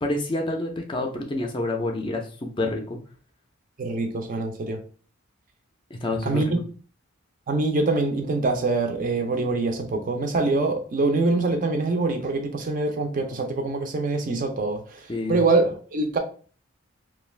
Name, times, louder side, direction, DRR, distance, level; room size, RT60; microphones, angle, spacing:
voice 1, 0.0-3.0 5.9-6.4 15.1-15.4, left 2 dB, 25° left, 0.4 m, -28 dB
voice 2, 3.8-4.8 6.2-6.6 7.5-16.2, right 3 dB, 40° right, 0.4 m, -24 dB
2.5 x 2.3 x 3.1 m
head